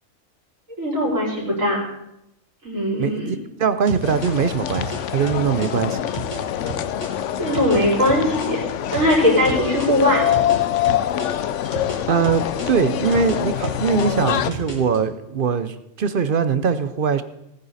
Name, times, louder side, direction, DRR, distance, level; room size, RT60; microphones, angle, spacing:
voice 1, 0.8-1.8 2.6-3.4 7.4-8.6 8.9-10.2, left 1 dB, 75° right, -5 dB, 5.0 m, -20 dB
voice 2, 3.0-6.1 12.1-17.2, right 6 dB, 50° right, 12 dB, 0.7 m, -22 dB
sound 1, 3.9-8.5 8.9-12.0 12.2-15.0, right 1 dB, 35° left, 3.7 m, -33 dB
sound 2, 4.0-14.5, left 11 dB, 70° left, 0.9 m, -25 dB
18.0 x 9.7 x 4.1 m, 0.84 s
omnidirectional pair, 1.4 m